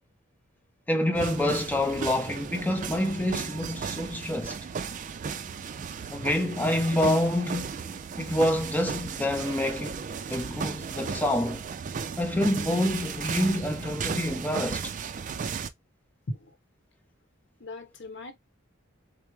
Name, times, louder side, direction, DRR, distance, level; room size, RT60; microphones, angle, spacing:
voice 1, 0.9-4.6 6.1-7.7 8.2-11.7 12.2-14.9, left 1 dB, 10° left, 0.6 m, -27 dB
sound 1, 1.1-15.7, right 6 dB, 40° right, 0.3 m, -35 dB
voice 2, 17.6-18.3, left 1 dB, 55° left, 0.9 m, -37 dB
4.5 x 2.0 x 3.1 m
head